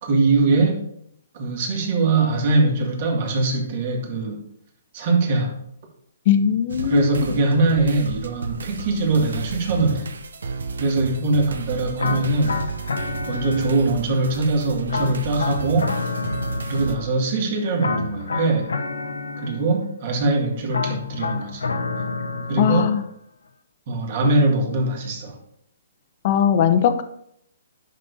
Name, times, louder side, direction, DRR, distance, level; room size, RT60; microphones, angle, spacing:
voice 1, 0.0-0.8 1.3-4.4 4.9-5.5 6.8-10.1 10.8-12.6 13.3-15.9 16.7-18.7 19.4-21.6 22.5-22.9 23.9-25.3, right 3 dB, 50° right, 0 dB, 2.2 m, -22 dB
voice 2, 6.3-7.1 22.6-23.0 26.2-27.0, left 9 dB, 45° left, 10 dB, 0.7 m, -19 dB
sound 1, 6.7-17.0, right 4 dB, 80° right, 0.8 m, -32 dB
sound 2, 12.0-14.1 14.9-17.3 17.8-19.9 20.7-23.1, left 4 dB, 85° left, 0.8 m, -29 dB
10.5 x 6.4 x 2.8 m, 0.72 s
hypercardioid pair, 140°, 0 cm